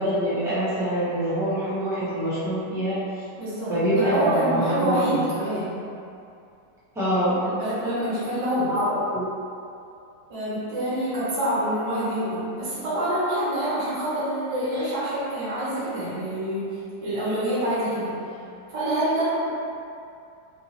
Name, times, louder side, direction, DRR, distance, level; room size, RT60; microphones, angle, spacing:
voice 1, 0.0-3.0 3.7-5.2 6.9-7.4 8.7-8.9 9.1-9.3, right 1 dB, 5° right, -12 dB, 0.4 m, -25 dB
voice 2, 3.4-5.8 7.4-8.7 10.3-18.2 18.7-19.5, right 1 dB, 20° right, -12 dB, 1.0 m, -26 dB
3.6 x 2.6 x 2.9 m, 2.6 s
omnidirectional pair, 2.0 m